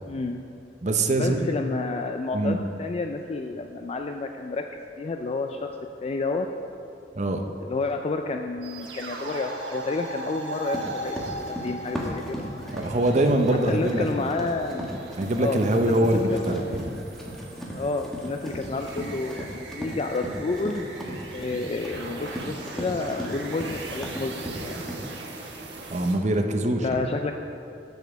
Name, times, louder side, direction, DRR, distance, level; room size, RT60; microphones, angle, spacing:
voice 1, 0.1-0.4 1.2-4.6 5.0-5.8 6.0-6.5 7.7-11.1 11.6-12.5 13.7-15.0 15.4-16.7 17.7-20.9 21.3-24.8 26.6-27.3, left 3 dB, 35° left, 5 dB, 0.3 m, -30 dB
voice 2, 0.8-1.5 2.3-2.6 7.2-7.4 12.7-14.3 15.2-16.8 25.9-27.0, right 1 dB, 40° right, 5 dB, 0.7 m, -23 dB
sound 1, 8.6-26.2, right 2 dB, 85° right, 1.3 m, -39 dB
Run, 10.7-25.0, equal, ahead, 1.3 m, -37 dB
8.0 x 7.0 x 6.4 m, 2.7 s
head